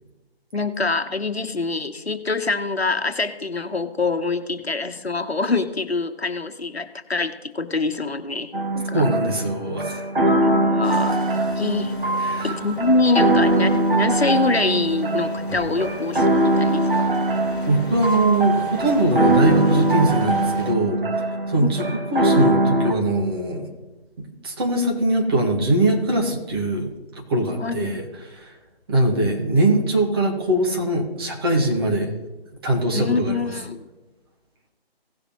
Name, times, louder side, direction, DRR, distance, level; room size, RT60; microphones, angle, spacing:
voice 1, 0.5-9.1 10.2-11.2 11.6-11.9 12.4-17.1 21.6-21.8 27.6-27.9 32.9-33.9, left 3 dB, 85° left, 9 dB, 1.1 m, -25 dB
sound 1, 8.5-22.9, right 1 dB, 60° right, 1.2 m, -22 dB
voice 2, 8.9-10.0 12.2-12.6 17.7-21.0 21.5-21.8 22.1-23.7 24.2-26.9 27.3-28.5 28.9-32.1 32.6-33.5, right 1 dB, 25° right, 0 dB, 1.7 m, -21 dB
sound 2, 10.8-20.7, left 3 dB, 55° left, 1.6 m, -39 dB
17.0 x 6.6 x 3.0 m, 1.1 s
figure-of-eight pair, 150°, 31 cm